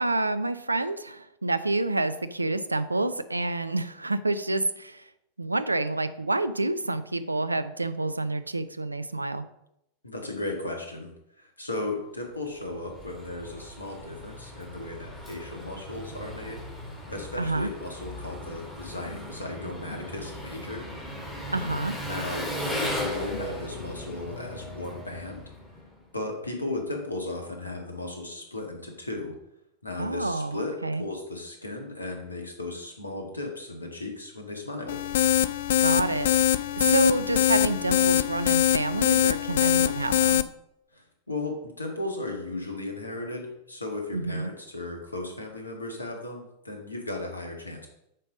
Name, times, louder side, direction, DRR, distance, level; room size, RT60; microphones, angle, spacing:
voice 1, 0.0-5.0 5.4-9.4 17.4-17.7 21.5-21.9 30.0-31.0 35.8-40.4 44.1-44.5, right 2 dB, 85° right, 13 dB, 0.5 m, -28 dB
voice 2, 10.0-11.1 11.4-16.6 17.1-20.9 22.0-25.5 26.1-29.3 29.8-35.0 40.9-47.9, left 2 dB, 80° left, 2 dB, 1.7 m, -36 dB
Engine, 12.4-26.0, left 1 dB, 10° left, 3.5 m, -37 dB
sound 1, 34.9-40.4, left 11 dB, 60° left, 0.3 m, -23 dB
8.5 x 5.3 x 5.0 m, 0.81 s
figure-of-eight pair, 90°, 0 cm